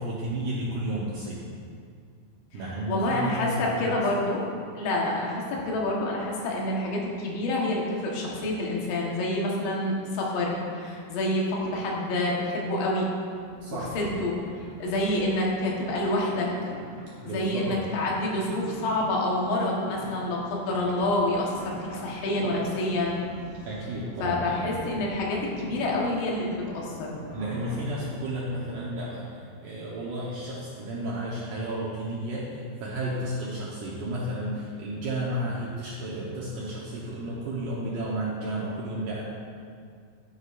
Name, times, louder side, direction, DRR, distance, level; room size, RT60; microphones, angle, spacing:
voice 1, 0.0-1.4 2.5-3.9 13.6-13.9 17.2-17.8 23.7-24.5 27.3-39.2, right 1 dB, 70° right, -7 dB, 2.0 m, -32 dB
voice 2, 2.5-4.4 4.8-13.1 13.7-14.4 14.8-16.7 17.3-23.2 24.2-27.2, left 1 dB, 90° left, -3 dB, 3.7 m, -28 dB
sound 1, 13.4-28.2, equal, 45° right, 1.1 m, -44 dB
11.5 x 9.8 x 2.5 m, 2.2 s
omnidirectional pair, 5.0 m